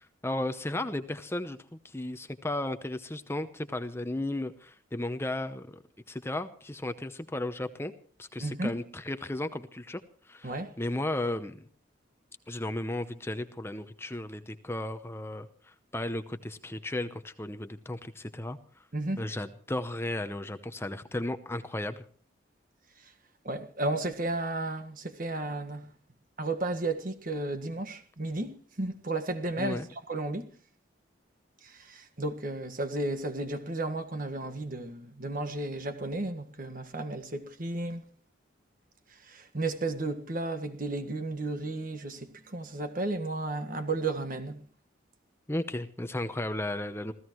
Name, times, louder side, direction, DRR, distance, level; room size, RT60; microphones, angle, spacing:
voice 1, 0.0-1.6 1.8-5.8 6.1-7.9 8.2-10.0 10.3-10.5 10.8-11.7 12.5-18.6 19.2-22.0 29.6-29.9 45.5-47.1, left 1 dB, 15° left, 0.8 m, -34 dB
voice 2, 8.4-8.7 10.4-10.7 18.9-19.2 23.4-25.9 26.4-29.8 30.1-30.5 31.6-38.0 39.3-44.6, right 2 dB, 45° right, 1.6 m, -33 dB
27.0 x 16.0 x 3.1 m
head